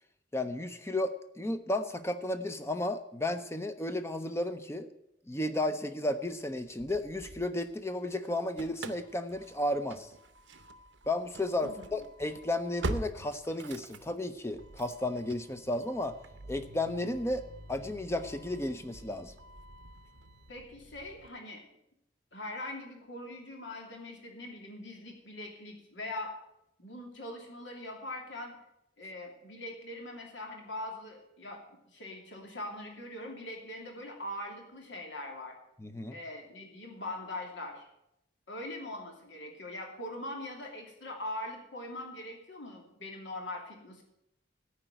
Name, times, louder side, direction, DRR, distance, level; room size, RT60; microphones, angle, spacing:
voice 1, 0.3-4.9 5.3-10.1 11.1-16.2 16.5-19.3 35.8-36.2, left 1 dB, 15° left, 9 dB, 0.6 m, -33 dB
Engine starting / Slam, 6.6-8.0 8.2-21.3, right 2 dB, 85° right, 0.8 m, -45 dB
voice 2, 11.6-12.0 20.5-21.6 22.3-26.3 26.8-28.5 29.0-35.6 36.1-37.9 38.5-44.0, left 1 dB, 80° left, 1 dB, 2.8 m, -42 dB
14.0 x 4.9 x 9.0 m, 0.84 s
head